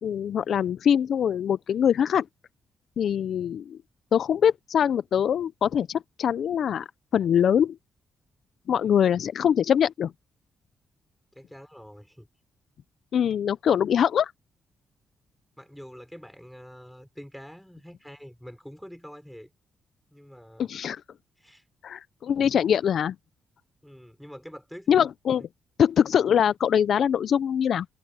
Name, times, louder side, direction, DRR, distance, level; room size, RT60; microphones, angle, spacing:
voice 1, 0.0-2.2 3.0-3.8 4.1-6.8 7.1-7.8 8.7-10.1 13.1-14.3 20.6-21.0 21.8-23.1 24.9-25.4 25.8-27.9, left 8 dB, 55° left, 0.4 m, -23 dB
voice 2, 11.3-12.3 15.6-19.5 20.1-20.7 21.4-21.7 23.8-25.1 25.4-25.5, equal, ahead, 5.0 m, -45 dB
wide cardioid pair, 160°, 0 cm